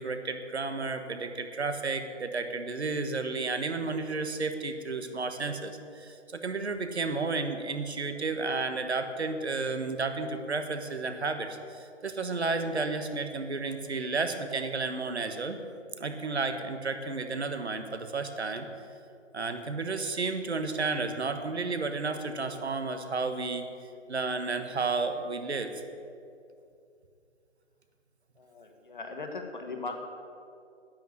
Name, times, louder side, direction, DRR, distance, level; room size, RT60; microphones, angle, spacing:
voice 1, 0.0-15.6 16.0-18.7 19.3-23.6 24.1-25.7, right 3 dB, 60° right, 8 dB, 1.4 m, -32 dB
voice 2, 28.4-29.9, left 3 dB, 40° left, 3 dB, 1.6 m, -39 dB
10.5 x 8.8 x 9.6 m, 2.5 s
hypercardioid pair, 175°, 37 cm